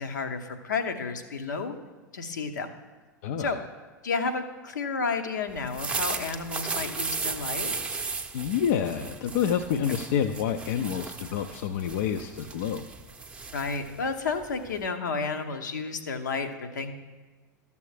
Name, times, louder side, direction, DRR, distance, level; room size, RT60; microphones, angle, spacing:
voice 1, 0.0-1.8 2.1-2.7 3.4-3.6 4.0-8.1 13.5-16.9, left 4 dB, 70° left, 7 dB, 0.8 m, -31 dB
voice 2, 3.2-3.6 8.3-12.8, left 8 dB, 50° left, 7 dB, 0.4 m, -28 dB
sound 1, 5.6-14.9, right 4 dB, 10° right, 0.6 m, -35 dB
13.0 x 6.9 x 3.3 m, 1.3 s
figure-of-eight pair, 90°, 10 cm